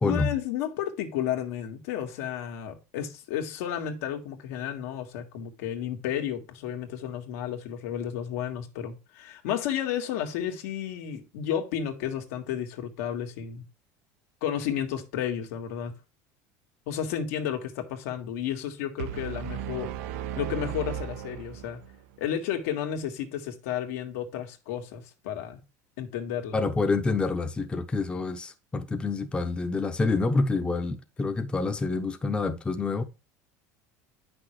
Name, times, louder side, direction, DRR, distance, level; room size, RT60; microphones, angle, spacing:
voice 1, 0.1-13.6 14.4-15.9 16.9-19.9 20.4-21.8 22.2-25.6 26.0-26.6, left 9 dB, 85° left, 1.8 m, -32 dB
sound 1, 19.0-22.1, right 10 dB, 85° right, 0.6 m, -35 dB
voice 2, 26.5-33.0, left 3 dB, 15° left, 0.7 m, -27 dB
8.9 x 6.0 x 3.1 m
supercardioid pair, 135°, 8 cm